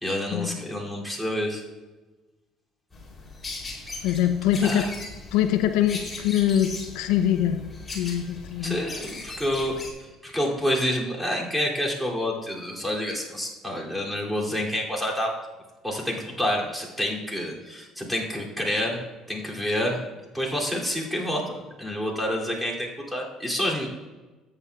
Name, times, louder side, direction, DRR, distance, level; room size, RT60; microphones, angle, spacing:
voice 1, 0.0-1.6 4.6-4.9 8.6-9.8 10.2-15.3 15.8-20.0 20.3-23.9, equal, 5° right, -2 dB, 2.6 m, -28 dB
sound 1, 2.9-9.9, left 3 dB, 20° left, 3.0 m, -39 dB
voice 2, 4.0-4.9 5.3-7.6 7.9-8.8, left 10 dB, 85° left, 8 dB, 0.5 m, -23 dB
13.5 x 8.7 x 2.3 m, 1.2 s
supercardioid pair, 85°, 0 cm